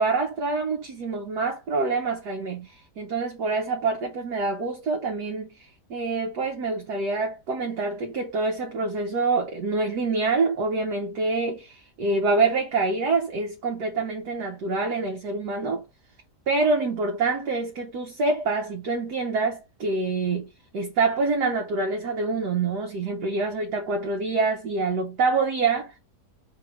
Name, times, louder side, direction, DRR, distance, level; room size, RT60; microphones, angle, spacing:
voice 1, 0.0-15.8 16.5-25.9, right 3 dB, 75° right, 1.4 m, -26 dB
3.3 x 3.2 x 4.7 m
omnidirectional pair, 1.8 m